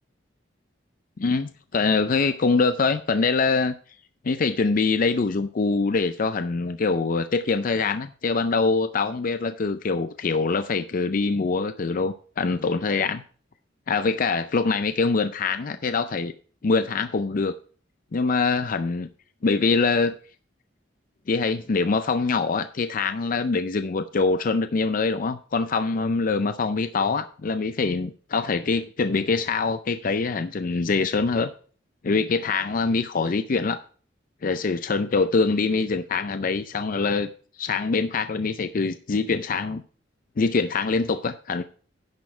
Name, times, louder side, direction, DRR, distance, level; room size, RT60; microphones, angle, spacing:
voice 1, 1.2-3.7 4.2-13.2 13.9-16.3 16.6-17.5 18.1-19.1 19.4-20.2 21.3-31.5 32.0-33.8 34.4-37.3 37.6-39.8 40.4-41.6, left 4 dB, 50° left, 10 dB, 0.5 m, -24 dB
10.5 x 6.3 x 4.4 m, 0.41 s
head